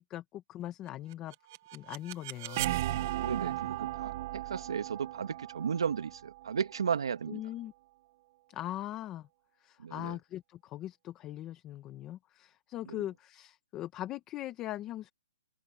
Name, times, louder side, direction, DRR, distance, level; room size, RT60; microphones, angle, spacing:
voice 1, 0.0-1.3 1.7-3.2 7.3-7.7 8.5-9.3 9.6-15.1, left 13 dB, 15° left, 1.3 m, -41 dB
sound 1, 1.1-7.0, right 15 dB, 30° right, 1.4 m, -36 dB
voice 2, 3.2-7.4 9.8-10.2 12.9-13.0, right 7 dB, 75° right, 1.9 m, -34 dB
open air
hypercardioid pair, 165°, 3 cm